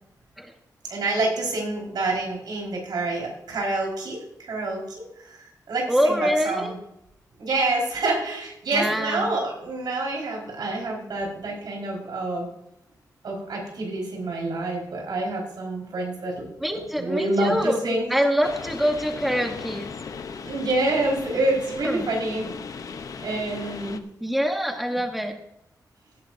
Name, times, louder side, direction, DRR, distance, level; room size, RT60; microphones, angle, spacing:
voice 1, 0.9-4.8 5.2-6.7 7.4-12.5 13.2-16.5 17.0-18.1 20.4-22.5 23.2-24.0, right 2 dB, 90° right, -1 dB, 4.7 m, -27 dB
voice 2, 5.9-6.7 8.7-9.3 16.6-17.8 18.1-19.9 21.8-22.1 24.2-25.4, equal, ahead, 4 dB, 1.2 m, -25 dB
sound 1, 18.4-24.0, left 5 dB, 55° left, 0.8 m, -37 dB
17.0 x 10.5 x 2.7 m, 0.82 s
wide cardioid pair, 155°, 7 cm